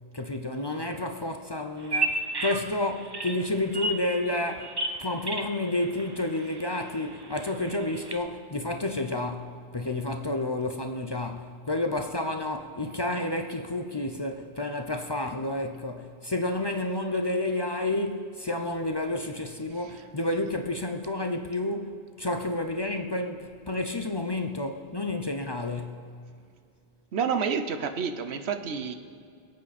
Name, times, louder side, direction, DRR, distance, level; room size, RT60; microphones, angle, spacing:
voice 1, 0.1-4.7 5.0-26.1, left 2 dB, 30° left, 0.6 m, -30 dB
Bird vocalization bird call bird song, 1.8-8.1, right 2 dB, 25° right, 0.8 m, -34 dB
voice 2, 27.1-29.0, right 6 dB, 80° right, 1.1 m, -29 dB
22.5 x 8.4 x 4.2 m
omnidirectional pair, 1.1 m